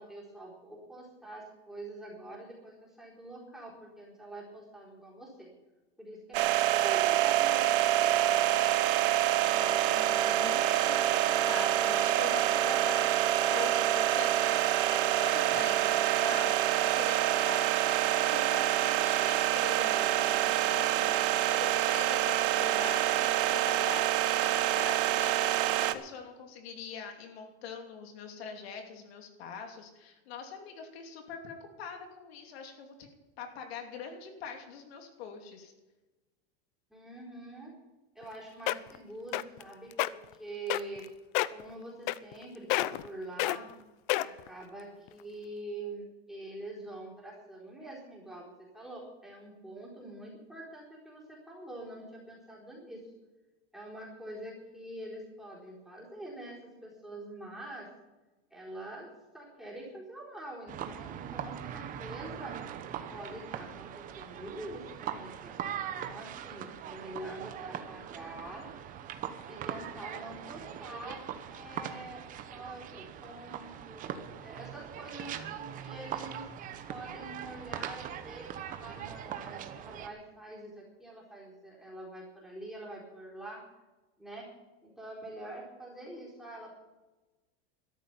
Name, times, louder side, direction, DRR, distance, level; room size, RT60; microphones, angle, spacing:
voice 1, 0.0-5.5 6.0-8.4 36.9-37.7 38.1-41.1 41.5-43.7 44.2-53.0 53.7-57.9 58.5-59.1 59.3-62.6 63.1-68.7 69.5-71.2 71.5-72.2 72.5-74.1 74.4-76.4 76.9-83.6 84.2-84.5 84.8-86.7, right 1 dB, ahead, -4 dB, 4.1 m, -45 dB
sound 1, 6.3-25.9, right 13 dB, 55° right, 1.0 m, -26 dB
voice 2, 9.2-33.1 33.4-35.7, left 6 dB, 75° left, 3 dB, 2.9 m, -43 dB
sound 2, 38.2-38.3 38.7-39.0 39.3-39.6 39.9-40.1 40.7-41.1 41.4-41.6 42.1-42.4 42.7-43.1 43.4-43.6 44.1-44.5 45.1-45.2, left 17 dB, 50° left, 0.6 m, -28 dB
sound 3, 60.7-80.1, right 9 dB, 25° right, 0.9 m, -41 dB
13.0 x 11.0 x 7.3 m, 1.1 s
supercardioid pair, 160°, 31 cm